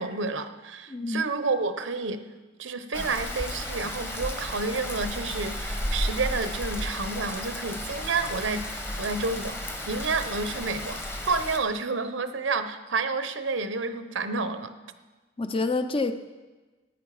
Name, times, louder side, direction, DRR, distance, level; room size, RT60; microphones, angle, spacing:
voice 1, 0.0-2.2 2.6-9.6 9.9-14.7, right 4 dB, 80° right, 0.8 m, -30 dB
voice 2, 0.9-1.3 15.4-16.1, left 3 dB, 30° left, 0.5 m, -27 dB
Rain, 2.9-11.6, left 1 dB, 10° left, 1.0 m, -33 dB
14.5 x 9.2 x 4.9 m
head